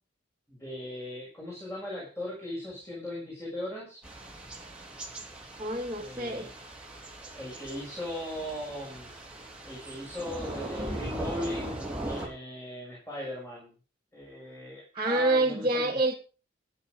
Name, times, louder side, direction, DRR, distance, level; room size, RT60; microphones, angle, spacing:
voice 1, 0.5-4.0 6.0-6.5 7.3-9.1 9.6-13.7 14.1-16.0, left 1 dB, 15° left, -4 dB, 7.2 m, -38 dB
Thunder / Rain, 4.0-12.3, right 1 dB, 5° right, 3.6 m, -39 dB
voice 2, 5.6-6.5 14.9-16.1, right 2 dB, 25° right, -4 dB, 2.3 m, -27 dB
15.0 x 8.9 x 5.3 m, 0.36 s
head